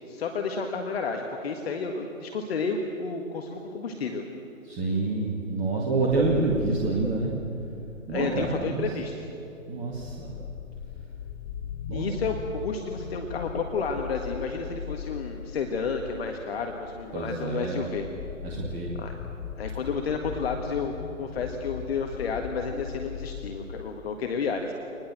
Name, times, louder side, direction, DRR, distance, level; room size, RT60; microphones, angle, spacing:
voice 1, 0.1-4.2 8.1-9.1 11.9-18.1 19.0-19.2 19.6-20.9 21.2-24.7, left 5 dB, 45° left, 4 dB, 1.9 m, -31 dB
voice 2, 4.6-7.4 8.1-8.9 9.7-10.3 11.9-12.1 17.1-17.9 18.4-19.0, right 3 dB, 20° right, -3 dB, 2.2 m, -27 dB
sound 1, 6.1-23.9, left 7 dB, 15° left, 0.6 m, -39 dB
25.0 x 20.5 x 7.6 m, 2.9 s
figure-of-eight pair, 135°, 41 cm